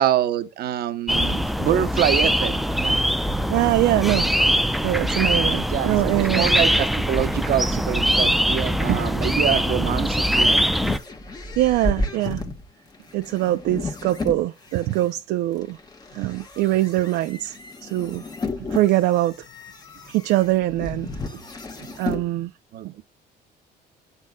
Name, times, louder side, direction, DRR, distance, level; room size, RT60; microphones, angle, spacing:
voice 1, 0.0-3.1 5.7-10.7 22.7-23.0, right 11 dB, 65° right, 0.9 m, -25 dB
sound 1, 1.1-11.0, equal, ahead, 0.4 m, -22 dB
voice 2, 3.5-4.3 4.8-6.6 8.9-9.0 11.6-12.4 13.1-15.8 16.1-18.2 18.7-19.3 20.1-21.1 22.0-22.5 22.8-22.9, right 16 dB, 80° right, 0.4 m, -23 dB
Ghost Scratch, 10.2-15.0 15.6-22.3, left 2 dB, 25° left, 1.4 m, -33 dB
7.2 x 6.6 x 2.2 m
cardioid pair, 110°, 17 cm